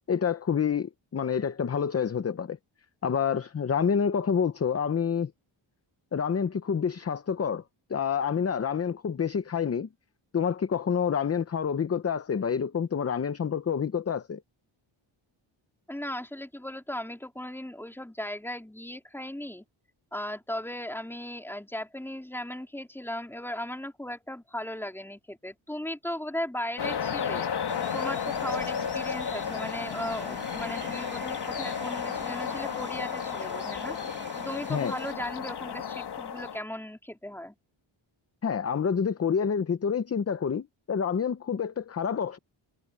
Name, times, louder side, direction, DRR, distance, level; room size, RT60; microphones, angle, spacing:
voice 1, 0.1-2.6 3.0-5.3 6.1-7.6 7.9-9.9 10.3-14.4 34.7-34.9 38.4-42.4, left 7 dB, 30° left, 0.7 m, -28 dB
voice 2, 15.9-19.6 20.1-27.5 27.9-34.0 34.4-37.5, left 1 dB, 5° left, 3.7 m, -37 dB
sound 1, 26.8-36.6, left 7 dB, 55° left, 1.4 m, -33 dB
sound 2, 27.7-35.1, right 3 dB, 20° right, 2.2 m, -46 dB
wide cardioid pair, 165°, 48 cm